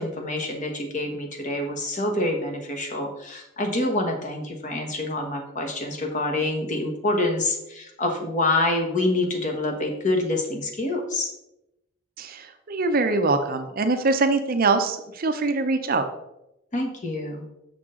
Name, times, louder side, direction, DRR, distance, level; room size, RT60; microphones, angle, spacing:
voice 1, 0.0-11.3 16.7-17.4, left 2 dB, 35° left, 2 dB, 1.2 m, -26 dB
voice 2, 12.2-16.1, right 3 dB, 45° right, 8 dB, 0.6 m, -23 dB
6.7 x 6.3 x 3.7 m, 0.88 s
head